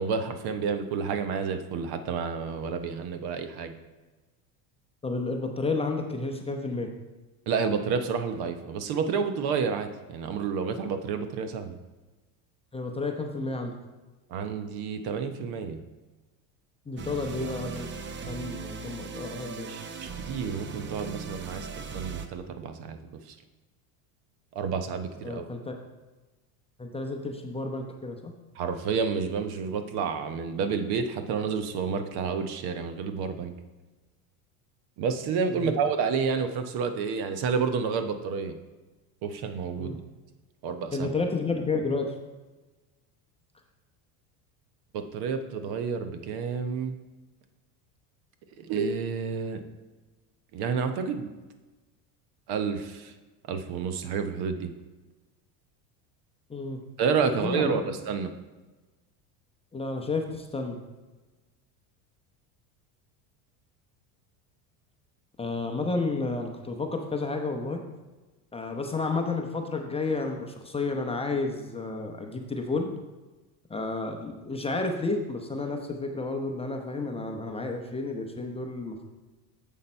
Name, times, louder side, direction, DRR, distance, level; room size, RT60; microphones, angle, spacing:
voice 1, 0.0-3.7 7.5-11.8 14.3-15.8 19.7-23.4 24.5-25.5 28.6-33.5 35.0-38.6 39.2-40.0 40.6-41.1 44.9-47.0 48.6-49.6 50.5-51.3 52.5-53.1 53.5-54.7 57.0-58.3, right 5 dB, 55° right, 8 dB, 0.9 m, -30 dB
voice 2, 5.0-6.9 12.7-13.7 16.9-17.9 18.2-19.7 25.2-25.8 26.8-28.3 35.5-35.7 39.8-40.0 40.9-42.1 56.5-56.8 57.3-57.8 59.7-60.8 65.4-67.8 68.5-72.9 73.7-79.0, left 3 dB, 15° left, 3 dB, 0.7 m, -31 dB
sound 1, 17.0-22.3, right 5 dB, 25° right, 0.6 m, -38 dB
7.3 x 6.5 x 4.3 m, 1.2 s
supercardioid pair, 110°, 46 cm